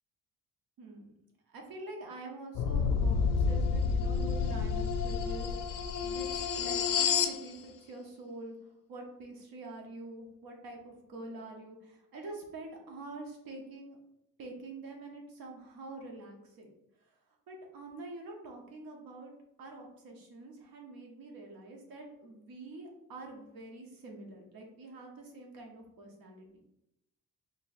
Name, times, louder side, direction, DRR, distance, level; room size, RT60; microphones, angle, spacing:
voice 1, 0.8-1.1 1.5-8.5 8.9-14.0 14.4-16.7 17.0-17.2 17.5-19.3 19.6-26.5, right 2 dB, 75° right, 1 dB, 1.0 m, -46 dB
sound 1, 2.5-7.4, left 6 dB, 65° left, 0.5 m, -29 dB
4.5 x 3.5 x 2.6 m, 0.84 s
cardioid pair, 150°, 35 cm